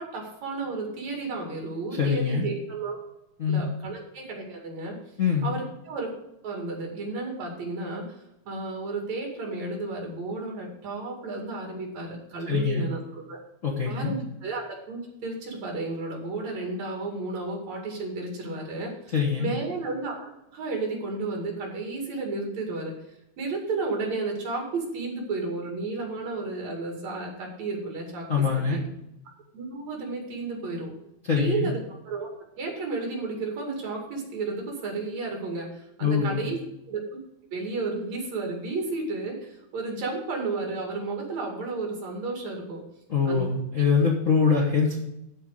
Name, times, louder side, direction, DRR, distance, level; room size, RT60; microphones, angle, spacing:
voice 1, 0.0-3.0 3.5-5.0 5.4-6.1 6.4-8.2 8.5-13.4 13.9-22.9 23.4-28.3 28.7-28.8 29.5-30.9 31.4-31.8 32.1-32.3 32.6-36.6 36.9-37.0 37.5-42.8 43.3-43.5, right 3 dB, 70° right, 0 dB, 3.6 m, -32 dB
voice 2, 1.9-2.5 3.4-3.7 5.2-5.5 12.5-12.9 13.6-14.1 19.1-19.5 28.3-28.8 31.2-31.7 36.0-36.5 43.1-45.1, left 5 dB, 40° left, -2 dB, 1.2 m, -24 dB
13.5 x 4.5 x 6.4 m, 0.86 s
omnidirectional pair, 3.3 m